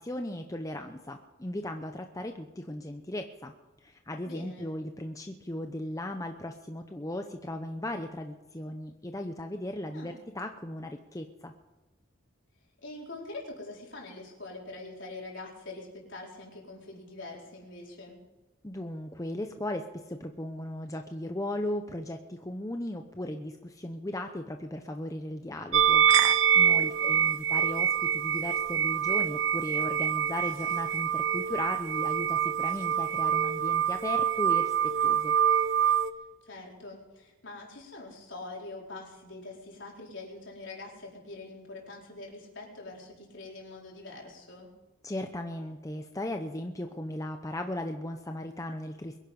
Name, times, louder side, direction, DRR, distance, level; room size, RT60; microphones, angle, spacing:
voice 1, 0.0-3.5 3.8-11.5 18.6-26.1 26.3-34.7 35.0-35.3 45.0-49.2, left 1 dB, 15° left, 5 dB, 0.7 m, -37 dB
voice 2, 4.2-4.7 9.9-10.2 12.8-18.2 26.6-27.2 36.4-44.7, left 2 dB, 60° left, -2 dB, 4.6 m, -44 dB
sound 1, 25.7-36.1, right 9 dB, 65° right, 0.8 m, -25 dB
22.5 x 10.5 x 5.4 m, 1.1 s
head